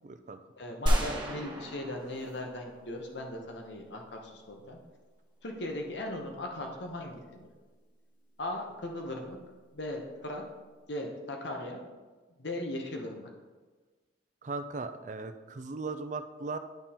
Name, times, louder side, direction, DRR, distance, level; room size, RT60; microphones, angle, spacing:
voice 1, 0.0-0.4 14.4-16.6, right 3 dB, 40° right, 10 dB, 0.4 m, -38 dB
voice 2, 0.6-4.8 5.4-7.4 8.4-9.4 9.7-10.4 10.9-11.8 12.4-13.3, left 1 dB, 70° left, 2 dB, 1.0 m, -38 dB
sound 1, 0.9-3.2, equal, 25° right, 1.1 m, -31 dB
10.5 x 3.7 x 4.3 m, 1.3 s
head